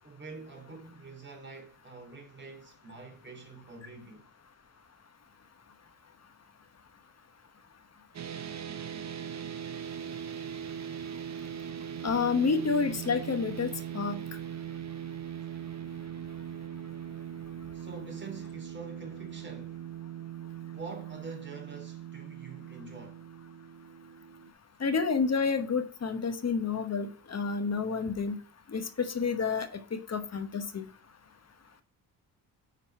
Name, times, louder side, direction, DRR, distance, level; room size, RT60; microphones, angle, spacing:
voice 1, 0.0-4.3 17.7-19.8 20.7-23.2, right 3 dB, 30° right, 2.8 m, -46 dB
sound 1, 8.1-24.5, right 9 dB, 45° right, 0.8 m, -40 dB
voice 2, 12.0-14.2 24.8-28.4 28.7-30.9, left 5 dB, 40° left, 1.0 m, -29 dB
9.2 x 4.1 x 4.3 m
cardioid pair, 90°, 38 cm